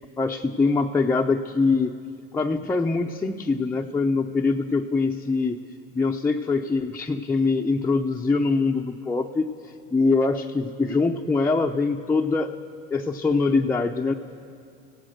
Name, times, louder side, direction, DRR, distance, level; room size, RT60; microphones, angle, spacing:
voice 1, 0.2-2.0 2.3-5.6 5.9-9.5 9.9-12.6 12.9-14.1, left 3 dB, 10° left, 1 dB, 0.5 m, -23 dB
24.5 x 16.5 x 6.5 m, 2.4 s
supercardioid pair, 135°, 30 cm